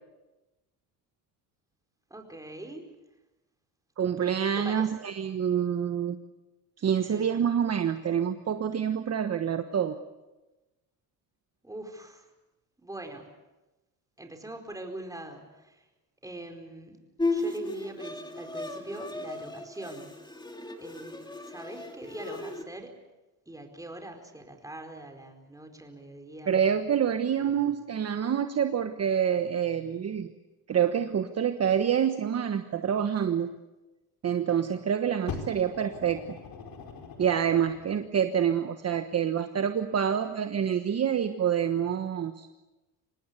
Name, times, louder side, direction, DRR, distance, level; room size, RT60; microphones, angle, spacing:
voice 1, 2.1-2.9 4.5-4.9 7.1-7.3 11.6-12.3 12.8-13.3 14.2-15.9 16.2-17.0 17.3-20.2 20.8-22.9 23.5-26.6, right 1 dB, 10° right, 4 dB, 4.6 m, -42 dB
voice 2, 4.0-6.2 6.8-10.0 26.5-30.3 30.7-33.5 34.2-36.4 37.2-42.5, right 8 dB, 35° right, 8 dB, 1.3 m, -27 dB
Bowed string instrument, 17.2-22.6, left 2 dB, 10° left, 2.8 m, -35 dB
Fire, 35.3-38.1 38.9-39.0, left 5 dB, 55° left, 4.3 m, -41 dB
25.5 x 19.0 x 8.3 m, 1.1 s
cardioid pair, 110°, 42 cm